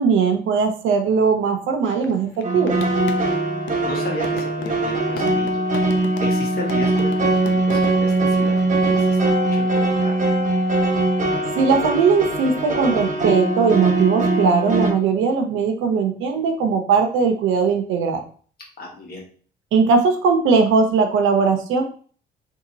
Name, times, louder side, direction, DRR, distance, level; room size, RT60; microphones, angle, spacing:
voice 1, 0.0-2.8 11.6-18.2 19.7-21.8, right 5 dB, 85° right, 5 dB, 0.8 m, -19 dB
sound 1, 1.8-3.9 4.2-6.4 6.7-8.1, left 7 dB, 70° left, 0.6 m, -37 dB
sound 2, 2.4-14.9, right 2 dB, 40° right, 1.1 m, -21 dB
voice 2, 3.8-5.6 6.2-10.1 18.8-19.2, left 1 dB, 50° left, -2 dB, 1.6 m, -34 dB
3.0 x 2.8 x 3.9 m, 0.44 s
cardioid pair, 90°, 20 cm